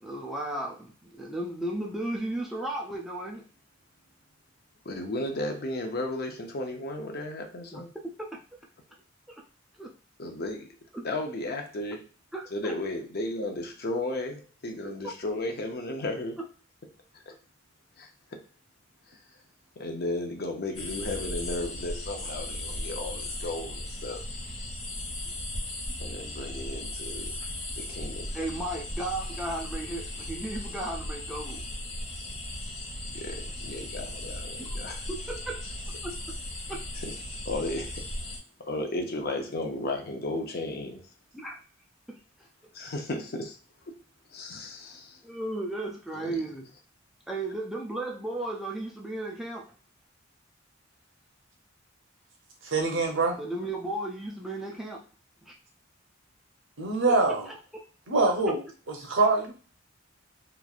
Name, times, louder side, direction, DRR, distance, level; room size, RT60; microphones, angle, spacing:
voice 1, 0.0-3.4 7.7-7.8 8.2-8.4 9.3-9.4 9.8-9.9 10.9-11.1 12.3-12.7 28.3-31.6 34.6-34.8 35.1-35.6 36.0-36.4 36.7-36.8 38.8-38.9 41.3-41.6 42.1-42.2 45.2-46.7 47.3-49.7 53.4-55.0 55.5-55.6 57.1-57.2 57.5-57.6, right 1 dB, ahead, 0.3 m, -35 dB
voice 2, 4.8-7.9 10.2-10.7 11.0-12.1 12.5-16.4 17.3-17.4 18.0-18.1 19.8-24.2 26.0-27.3 27.7-28.3 33.1-35.1 37.0-37.1 37.4-38.0 38.6-41.0 42.7-43.5 44.3-45.2 46.2-46.4, left 2 dB, 50° left, 0.6 m, -34 dB
sound 1, 20.7-38.4, left 1 dB, 35° left, 1.2 m, -37 dB
voice 3, 52.6-53.4 56.8-57.5 58.1-59.5, right 3 dB, 70° right, 0.8 m, -24 dB
3.0 x 2.3 x 2.4 m
head